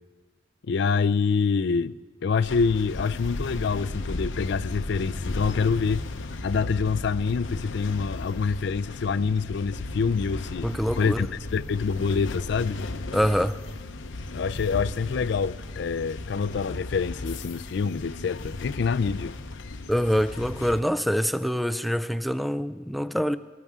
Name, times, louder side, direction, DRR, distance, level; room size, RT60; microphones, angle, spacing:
voice 1, 0.7-2.0 2.2-6.0 6.4-10.7 11.0-12.8 14.3-19.3, left 5 dB, 65° left, 0.4 m, -26 dB
sound 1, 2.4-20.8, left 2 dB, 85° left, 0.8 m, -35 dB
voice 2, 10.6-11.3 13.1-13.6 19.9-23.4, equal, ahead, 0.4 m, -25 dB
19.5 x 19.0 x 3.6 m
head